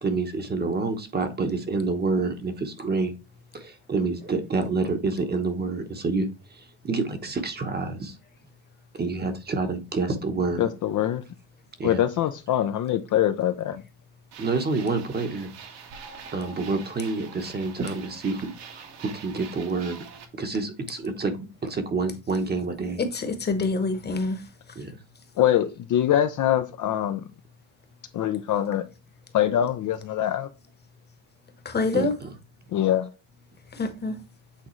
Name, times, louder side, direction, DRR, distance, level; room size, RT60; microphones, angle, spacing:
voice 1, 0.0-3.1 3.5-8.2 8.9-10.7 11.8-12.0 14.4-15.5 16.3-20.0 20.4-23.0 24.7-25.0 31.9-32.3, right 3 dB, 20° right, 1.0 m, -28 dB
voice 2, 10.6-11.2 11.8-13.8 25.4-27.3 28.1-28.9 29.3-30.5 32.7-33.1, left 11 dB, 45° left, 0.5 m, -24 dB
sound 1, 14.3-20.2, right 6 dB, 75° right, 1.8 m, -44 dB
voice 3, 23.0-24.4 31.6-32.1 33.8-34.1, left 3 dB, 25° left, 1.1 m, -26 dB
8.5 x 3.7 x 3.1 m
cardioid pair, 135°, 43 cm